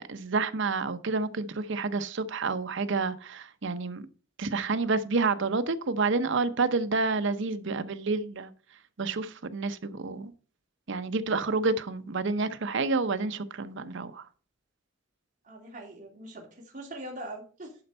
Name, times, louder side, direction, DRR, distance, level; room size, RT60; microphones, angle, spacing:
voice 1, 0.0-4.1 4.4-8.5 9.0-10.3 10.9-14.2, right 3 dB, 65° right, 0.7 m, -29 dB
voice 2, 15.4-17.8, right 1 dB, 40° right, 2.7 m, -42 dB
11.0 x 4.4 x 5.3 m
head